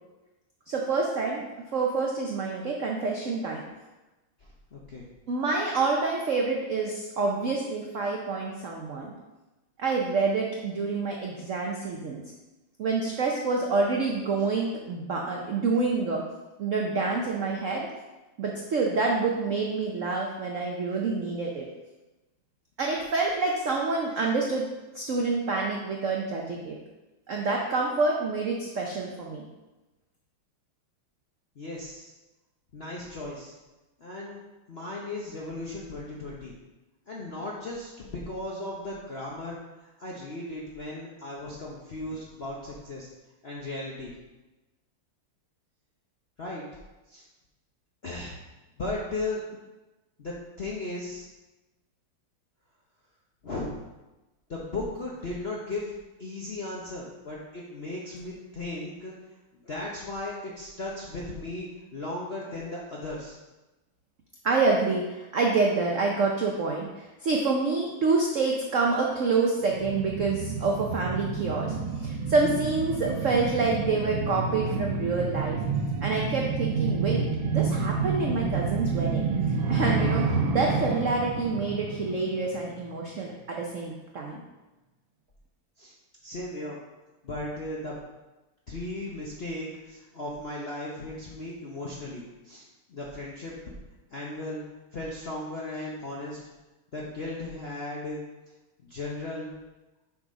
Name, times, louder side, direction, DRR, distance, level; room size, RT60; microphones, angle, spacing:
voice 1, 0.7-1.4 1.7-3.6 5.3-9.1 9.8-12.2 12.8-16.2 16.6-17.9 18.4-21.7 22.8-24.7 24.9-26.8 27.3-29.4 64.4-75.6 76.0-79.3 79.7-84.4, right 3 dB, 90° right, 0 dB, 0.6 m, -27 dB
voice 2, 4.4-5.1 31.6-32.1 32.7-33.6 34.0-34.4 34.7-36.5 37.1-43.1 43.4-44.1 46.4-46.6 47.1-47.3 48.0-48.4 48.8-49.4 50.2-51.2 53.4-53.8 54.5-55.9 56.2-59.1 59.6-63.4 85.8-85.9 86.2-86.8 87.2-88.0 88.7-93.5 94.1-94.6 94.9-96.4 96.9-98.2 98.8-99.5, left 2 dB, 60° left, -4 dB, 0.6 m, -36 dB
sound 1, 69.6-82.9 83.2-83.3, right 4 dB, 70° right, 1.5 m, -29 dB
7.2 x 4.0 x 5.1 m, 1.1 s
omnidirectional pair, 2.4 m